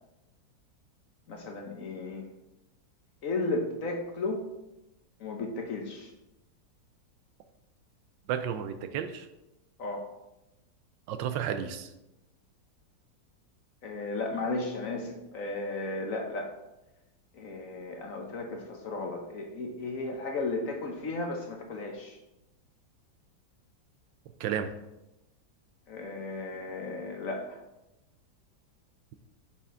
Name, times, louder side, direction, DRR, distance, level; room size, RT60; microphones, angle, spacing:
voice 1, 1.3-2.2 3.2-4.4 5.2-6.1 9.8-10.1 13.8-16.5 17.3-22.2 25.9-27.6, left 2 dB, 55° left, 3 dB, 1.1 m, -34 dB
voice 2, 8.3-9.3 11.1-11.9 24.4-24.7, right 8 dB, 90° right, 9 dB, 1.4 m, -32 dB
6.9 x 6.1 x 3.7 m, 0.95 s
omnidirectional pair, 2.0 m